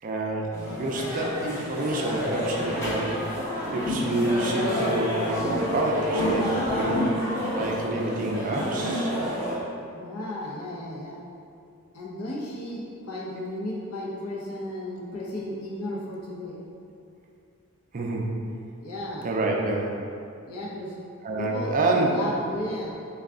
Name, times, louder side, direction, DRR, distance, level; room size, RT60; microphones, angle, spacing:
voice 1, 0.0-7.0 7.6-9.1 17.9-18.3 19.2-20.0 21.2-22.1, right 2 dB, 40° right, -1 dB, 0.4 m, -28 dB
sound 1, 0.5-9.5, equal, 15° left, 0.8 m, -28 dB
voice 2, 9.9-11.2 11.9-16.6 18.8-19.3 20.4-21.0 21.4-21.7 22.1-22.9, left 1 dB, 80° left, -4 dB, 0.7 m, -34 dB
3.4 x 2.3 x 3.6 m, 2.5 s
head